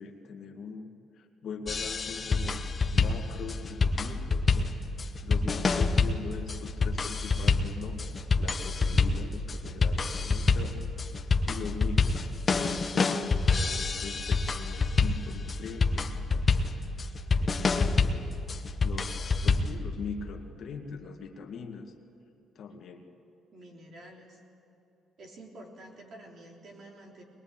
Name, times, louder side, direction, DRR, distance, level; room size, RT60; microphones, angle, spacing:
voice 1, 0.0-4.7 5.2-8.0 8.4-10.9 11.5-12.2 12.5-16.7 17.4-18.3 18.8-19.2 19.4-21.9 22.6-23.1, left 5 dB, 50° left, 3 dB, 1.8 m, -42 dB
sound 1, 1.7-19.8, left 4 dB, 25° left, 0.9 m, -27 dB
voice 2, 23.5-24.4 25.2-27.2, right 1 dB, 45° right, 0 dB, 3.6 m, -49 dB
22.0 x 21.5 x 8.8 m, 2.8 s
cardioid pair, 170°, 0 cm